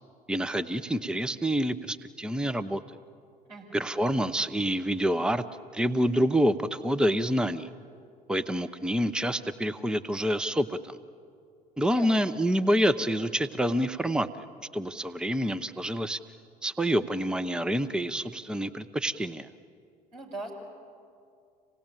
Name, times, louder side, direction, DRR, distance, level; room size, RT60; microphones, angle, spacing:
voice 1, 0.3-2.8 3.7-5.4 5.7-7.7 8.3-11.0 11.8-14.4 14.7-16.2 16.6-19.5, equal, 5° right, 11 dB, 0.8 m, -27 dB
voice 2, 20.1-20.5, right 2 dB, 85° right, -3 dB, 5.4 m, -39 dB
26.5 x 18.5 x 9.1 m, 2.4 s
figure-of-eight pair, 60°, 21 cm